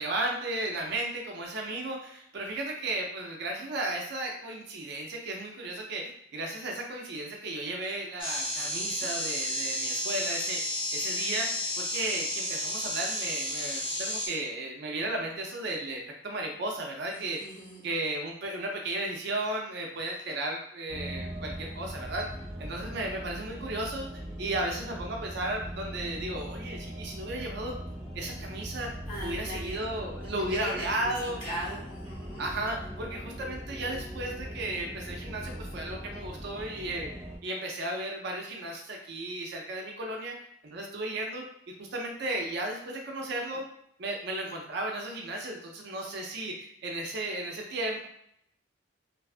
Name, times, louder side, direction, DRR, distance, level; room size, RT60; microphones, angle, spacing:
voice 1, 0.0-11.5 11.8-17.4 17.8-22.3 22.6-24.1 24.4-27.7 28.1-28.9 29.2-31.4 32.4-37.1 37.4-40.4 40.6-43.7 44.0-48.1, right 1 dB, 60° right, 1 dB, 0.5 m, -34 dB
sound 1, 8.2-14.3, equal, 25° left, 0.8 m, -32 dB
voice 2, 17.1-17.9 29.1-29.8 30.2-32.4 46.0-46.1, equal, 50° left, -7 dB, 1.3 m, -40 dB
sound 2, 20.9-37.4, equal, ahead, 0.5 m, -40 dB
2.5 x 2.3 x 2.4 m, 0.73 s
head